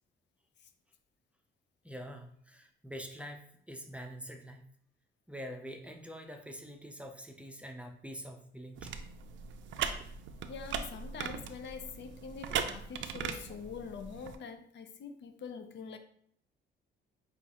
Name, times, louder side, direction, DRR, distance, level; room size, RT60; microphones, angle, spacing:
voice 1, 1.8-3.4 3.7-4.6 5.3-8.9, equal, 5° right, 0.5 m, -45 dB
sound 1, 8.8-14.4, right 7 dB, 70° right, 0.5 m, -39 dB
voice 2, 10.5-16.0, left 6 dB, 60° left, 0.6 m, -44 dB
5.9 x 2.5 x 2.8 m
cardioid pair, 90°, 20 cm